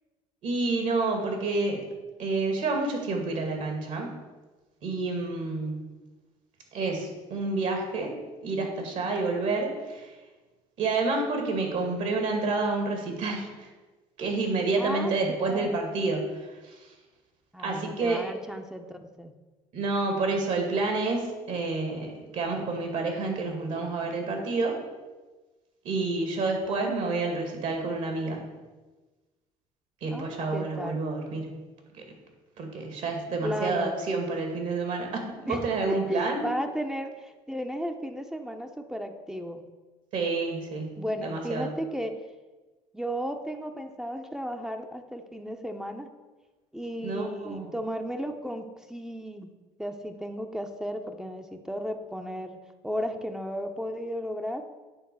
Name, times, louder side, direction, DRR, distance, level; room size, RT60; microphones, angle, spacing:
voice 1, 0.4-1.9 2.2-4.1 4.8-5.8 6.7-8.1 8.4-10.1 10.8-13.7 14.2-16.9 17.6-18.2 19.7-24.8 25.8-28.4 30.0-31.6 31.9-32.0 32.6-36.5 40.1-41.7 47.0-47.7, right 3 dB, 65° right, 3 dB, 2.2 m, -29 dB
voice 2, 5.2-5.7 14.8-15.7 17.5-19.3 26.2-27.0 30.1-31.0 33.4-34.0 35.5-39.7 41.0-42.2 42.9-46.1 46.7-49.5 49.8-52.6 52.8-54.7, equal, 5° right, 5 dB, 0.8 m, -35 dB
8.9 x 3.7 x 6.8 m, 1.2 s
supercardioid pair, 85°, 14 cm